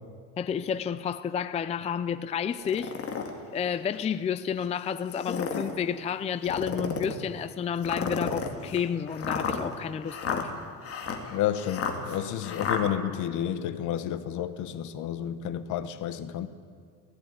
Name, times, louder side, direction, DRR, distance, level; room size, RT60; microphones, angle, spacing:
voice 1, 0.4-2.9 3.5-10.5, left 7 dB, 20° left, 0.4 m, -30 dB
sound 1, 2.6-3.3 3.9-4.0 5.1-5.7 6.4-7.2 7.8-12.8, left 6 dB, 45° left, 2.5 m, -32 dB
voice 2, 11.3-16.5, left 10 dB, 60° left, 1.2 m, -31 dB
17.5 x 16.5 x 9.6 m
cardioid pair, 150°, 33 cm